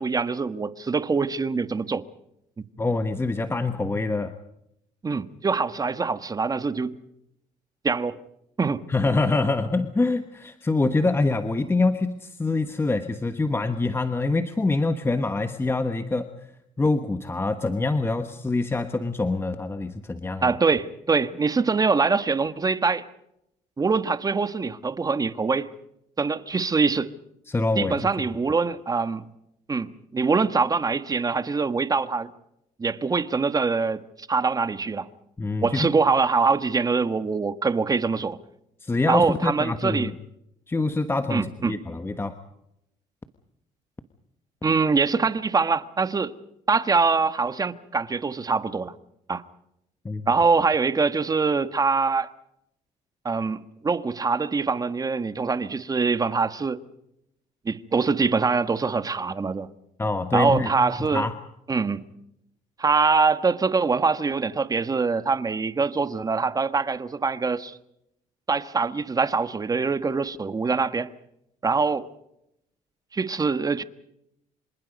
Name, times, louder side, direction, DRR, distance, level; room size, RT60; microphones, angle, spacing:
voice 1, 0.0-2.0 5.0-6.9 7.8-8.2 8.6-8.8 20.4-23.0 23.8-25.7 26.2-27.1 27.7-29.2 29.7-32.3 32.8-35.1 35.6-38.4 39.1-40.1 41.3-41.8 44.6-46.3 46.7-48.9 49.3-49.4 50.3-52.3 53.2-56.8 57.6-59.7 60.3-61.3 61.7-62.0 62.8-67.8 68.5-71.1 71.6-72.1 73.1-73.8, right 4 dB, 25° right, 1.4 m, -24 dB
voice 2, 2.8-4.3 8.9-16.3 16.8-20.6 27.5-28.0 35.4-35.9 38.8-40.1 40.7-42.4 50.0-50.3 60.0-60.7 61.0-61.3, left 3 dB, 15° left, 1.2 m, -25 dB
27.5 x 26.0 x 5.3 m
cardioid pair, 100°, 15 cm